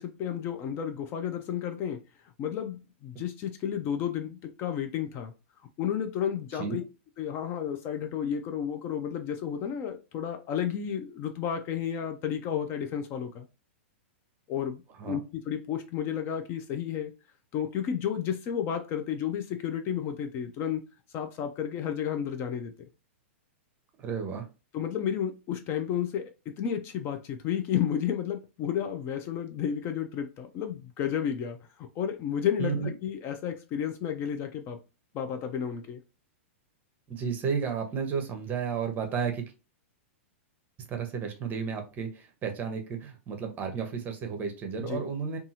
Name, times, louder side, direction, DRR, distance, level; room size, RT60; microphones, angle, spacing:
voice 1, 0.0-2.0 2.4-5.3 5.8-6.8 7.2-13.5 14.5-17.1 17.5-20.8 21.1-22.7 24.7-26.2 26.6-34.8 35.1-36.0 44.8-45.0, left 9 dB, 35° left, 0.4 m, -32 dB
voice 2, 24.0-24.5 32.6-32.9 37.1-39.4 40.9-45.4, right 6 dB, 25° right, 0.7 m, -32 dB
2.7 x 2.3 x 2.7 m
hypercardioid pair, 130°, 7 cm